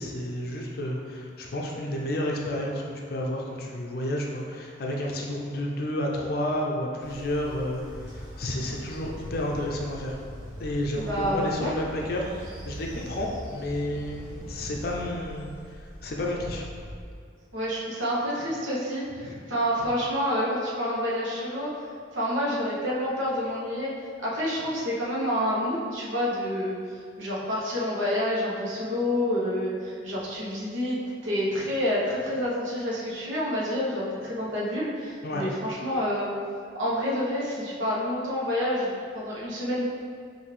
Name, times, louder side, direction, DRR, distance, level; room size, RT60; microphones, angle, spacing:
voice 1, 0.0-10.2 10.6-16.7 19.2-19.4 35.2-35.4, left 1 dB, 50° left, -1 dB, 0.5 m, -31 dB
Train, 7.0-17.0, equal, 65° right, 1.4 m, -41 dB
voice 2, 11.0-11.7 17.5-21.7 22.1-23.9 24.2-31.0 31.2-36.3 36.7-39.8, equal, 85° right, -6 dB, 1.0 m, -28 dB
5.8 x 2.6 x 3.3 m, 2.3 s
head